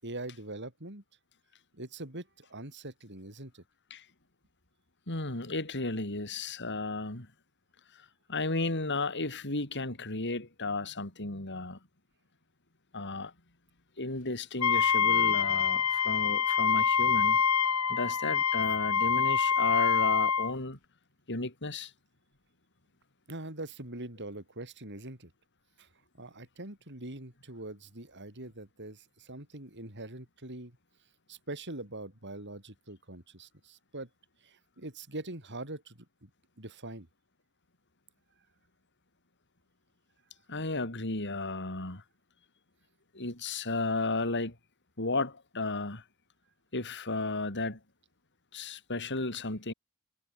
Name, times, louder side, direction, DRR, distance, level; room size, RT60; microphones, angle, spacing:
voice 1, 0.0-1.0 1.7-3.6 23.3-25.3 25.8-25.9 26.1-30.8 31.3-34.1 34.4-36.3 36.6-37.1, right 2 dB, 55° right, 7.4 m, -43 dB
voice 2, 5.1-7.3 8.3-11.8 12.9-13.3 14.0-17.4 17.9-20.8 21.3-21.9 40.5-42.0 43.1-44.5 45.0-46.0 46.7-47.8 48.5-49.7, left 2 dB, 55° left, 4.5 m, -33 dB
Wind instrument woodwind instrument, 14.6-20.5, left 6 dB, 85° left, 4.4 m, -26 dB
head